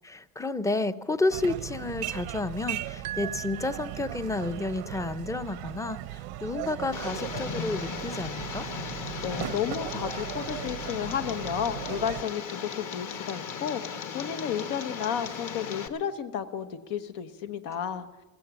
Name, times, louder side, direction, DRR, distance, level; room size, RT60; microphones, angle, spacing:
voice 1, 0.0-8.7, left 2 dB, 10° left, 13 dB, 0.4 m, -31 dB
sound 1, 1.3-12.2, right 15 dB, 90° right, 0.8 m, -38 dB
sound 2, 3.0-4.6, right 11 dB, 55° right, 0.5 m, -40 dB
Tick, 6.9-15.9, left 6 dB, 50° left, 1.2 m, -37 dB
voice 2, 9.2-18.1, left 8 dB, 90° left, 8 dB, 1.0 m, -32 dB
15.5 x 15.0 x 6.0 m, 1.2 s
cardioid pair, 115°, 41 cm